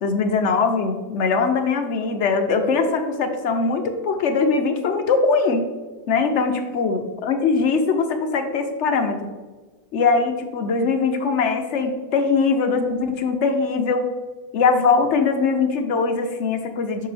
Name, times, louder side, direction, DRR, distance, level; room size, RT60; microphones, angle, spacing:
voice 1, 0.0-5.7 6.1-9.2 9.9-14.1 14.5-17.1, left 4 dB, 60° left, 6 dB, 0.8 m, -21 dB
6.5 x 5.9 x 3.4 m, 1.3 s
omnidirectional pair, 1.8 m